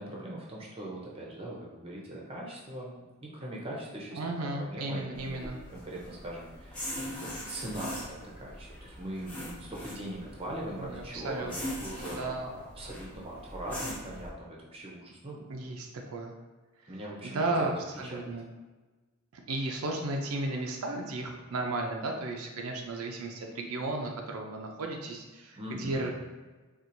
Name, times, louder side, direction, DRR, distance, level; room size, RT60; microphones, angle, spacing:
voice 1, 0.0-5.4 5.7-7.1 7.4-15.5 16.9-17.7 18.0-18.3 25.6-26.1, right 1 dB, 25° right, -4 dB, 0.6 m, -41 dB
voice 2, 4.1-5.6 10.8-11.8 12.1-12.5 15.5-16.3 16.8-16.9 17.2-17.7 18.0-18.4 19.3-26.1, right 2 dB, 85° right, 1 dB, 0.5 m, -34 dB
sound 1, 5.1-14.3, left 1 dB, 5° left, 0.8 m, -42 dB
4.3 x 2.4 x 2.6 m, 1.3 s
head